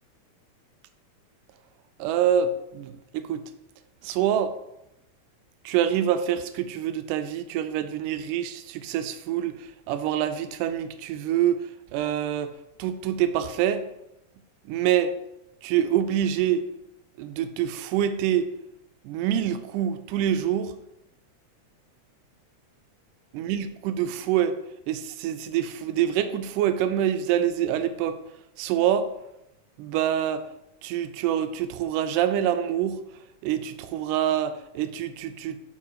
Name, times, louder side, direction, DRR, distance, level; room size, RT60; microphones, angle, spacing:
voice 1, 2.0-3.4 4.0-4.6 5.7-12.5 12.8-13.9 14.7-15.1 15.6-16.6 17.2-18.5 19.0-20.8 23.3-24.6 24.9-28.2 28.6-29.1 29.8-30.5 30.8-33.0 33.4-35.6, right 10 dB, 90° right, 10 dB, 2.1 m, -26 dB
7.4 x 4.7 x 4.6 m, 0.86 s
omnidirectional pair, 3.6 m